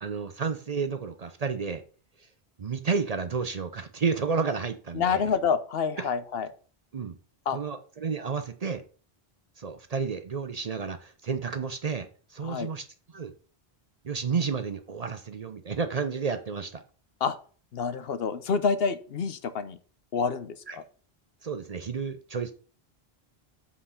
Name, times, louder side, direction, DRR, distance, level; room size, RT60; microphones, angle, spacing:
voice 1, 0.0-1.8 2.6-5.2 6.0-6.1 6.9-7.1 7.5-8.8 9.6-12.8 13.1-13.3 14.0-16.8 20.7-20.8 21.4-22.5, right 5 dB, 45° right, 9 dB, 0.6 m, -31 dB
voice 2, 4.9-6.5 7.5-7.6 12.4-12.7 17.2-17.4 17.7-19.8 20.1-20.8, left 6 dB, 70° left, 12 dB, 0.9 m, -28 dB
7.6 x 4.3 x 5.6 m, 0.40 s
omnidirectional pair, 1.0 m